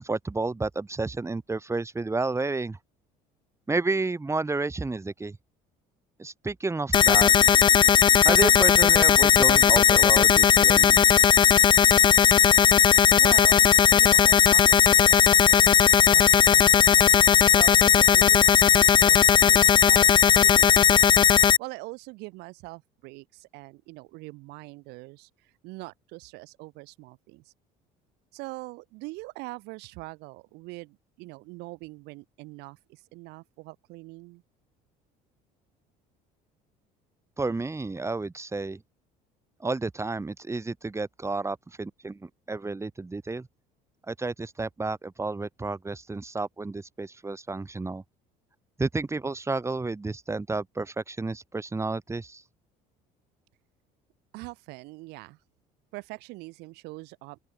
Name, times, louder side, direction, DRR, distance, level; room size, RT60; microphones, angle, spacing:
voice 1, 0.0-2.8 3.7-5.4 6.2-7.7 8.2-11.0 37.4-38.8 39.6-43.5 44.1-48.0 48.8-52.4, right 3 dB, 15° right, 5.7 m, -31 dB
sound 1, 6.9-21.6, left 8 dB, 30° left, 0.4 m, -17 dB
voice 2, 13.1-21.2 21.6-27.4 28.3-34.4 54.3-55.4 55.9-57.4, right 24 dB, 80° right, 6.0 m, -42 dB
open air
supercardioid pair, 95°, 17 cm